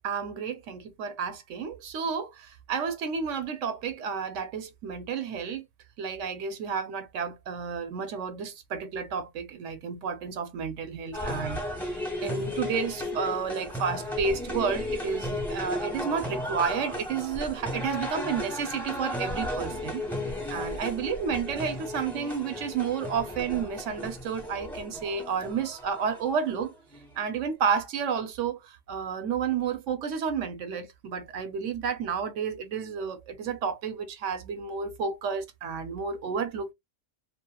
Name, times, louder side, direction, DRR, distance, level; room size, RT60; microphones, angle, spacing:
voice 1, 0.0-5.6 6.0-11.6 12.2-20.1 20.5-26.7 27.2-36.7, right 6 dB, 80° right, 1.0 m, -31 dB
sound 1, 11.1-27.2, left 1 dB, ahead, 0.9 m, -35 dB
2.9 x 2.4 x 2.2 m
omnidirectional pair, 1.3 m